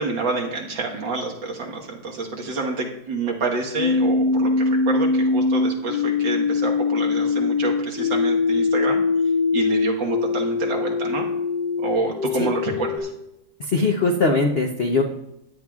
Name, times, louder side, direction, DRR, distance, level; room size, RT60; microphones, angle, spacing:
voice 1, 0.0-9.0 9.5-11.3 11.8-13.1, right 4 dB, 65° right, 0 dB, 2.1 m, -28 dB
sound 1, 3.8-13.0, left 4 dB, 60° left, 1.8 m, -22 dB
voice 2, 13.6-15.0, left 3 dB, 90° left, 2 dB, 0.5 m, -21 dB
16.5 x 10.5 x 2.4 m, 0.85 s
omnidirectional pair, 2.3 m